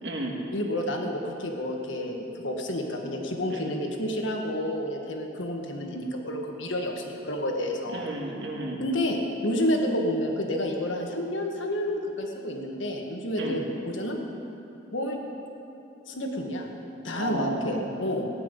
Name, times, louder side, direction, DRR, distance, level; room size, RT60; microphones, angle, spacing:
voice 1, 0.0-0.4 3.5-3.7 7.9-8.8 13.4-13.6 17.2-18.0, right 1 dB, 65° right, 0 dB, 1.9 m, -33 dB
voice 2, 0.5-8.1 8.8-14.2 14.9-15.2 16.1-16.7 17.0-18.3, left 1 dB, 80° left, 2 dB, 1.6 m, -30 dB
16.5 x 10.0 x 5.4 m, 2.9 s
head